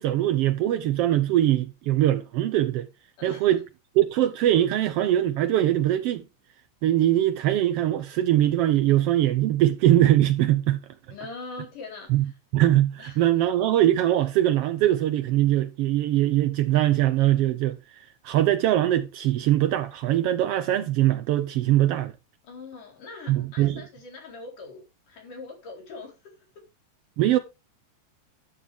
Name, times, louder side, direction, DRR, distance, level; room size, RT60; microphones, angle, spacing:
voice 1, 0.0-2.9 3.2-3.6 4.0-6.2 6.8-10.8 12.1-12.2 12.5-22.1 23.3-23.8 27.2-27.4, right 13 dB, 90° right, 1.3 m, -22 dB
voice 2, 3.2-3.6 11.1-12.4 13.0-13.2 22.4-26.1, left 3 dB, 90° left, 5.9 m, -42 dB
11.0 x 8.4 x 3.5 m
omnidirectional pair, 3.5 m